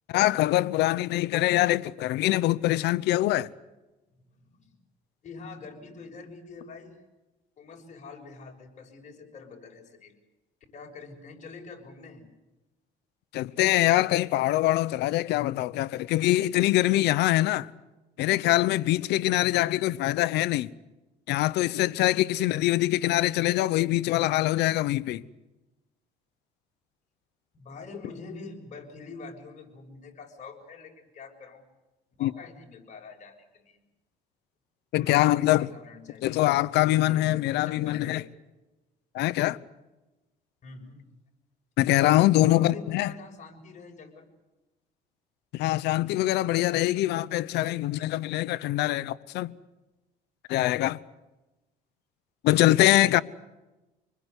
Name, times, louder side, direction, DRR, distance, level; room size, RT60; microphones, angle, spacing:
voice 1, 0.1-3.5 13.3-17.7 18.2-20.7 21.3-25.2 32.2-32.3 34.9-35.7 36.2-38.2 39.1-39.6 41.8-43.1 45.5-49.5 50.5-51.0 52.4-53.2, left 16 dB, 85° left, 0.9 m, -24 dB
voice 2, 4.4-4.8 5.2-7.0 7.6-10.2 10.7-12.2 19.2-19.8 27.5-31.6 32.2-33.8 35.0-38.3 40.6-41.0 42.4-44.3 47.6-47.9, left 4 dB, 45° left, 6.6 m, -45 dB
26.5 x 21.0 x 8.3 m
cardioid pair, 110°, 17 cm